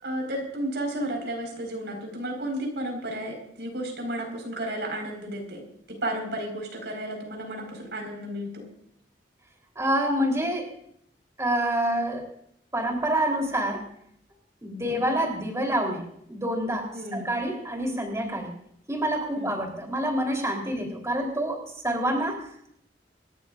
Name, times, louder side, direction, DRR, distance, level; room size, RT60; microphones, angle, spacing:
voice 1, 0.0-5.6 5.9-8.6 14.9-15.2 16.9-17.3 19.3-19.5 20.7-20.8, right 1 dB, 75° right, 1 dB, 4.8 m, -33 dB
voice 2, 9.8-10.8 11.4-12.3 12.7-13.8 14.6-18.5 18.9-22.7, right 1 dB, 15° right, 1 dB, 3.6 m, -27 dB
27.0 x 14.0 x 2.5 m, 0.70 s
head